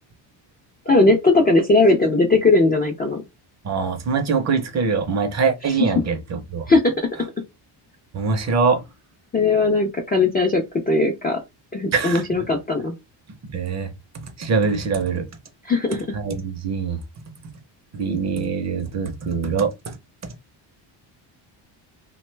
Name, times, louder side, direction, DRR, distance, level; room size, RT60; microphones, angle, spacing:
voice 1, 0.9-3.2 5.6-5.9 6.7-7.1 9.3-11.4 11.7-12.9 15.6-16.2, left 3 dB, 20° left, 0.3 m, -19 dB
voice 2, 3.6-6.6 8.1-8.8 11.9-12.2 13.5-13.9 14.4-15.3 16.1-17.0 17.9-19.7, right 5 dB, 35° right, 0.5 m, -23 dB
3.0 x 2.2 x 3.1 m
cardioid pair, 150°, 48 cm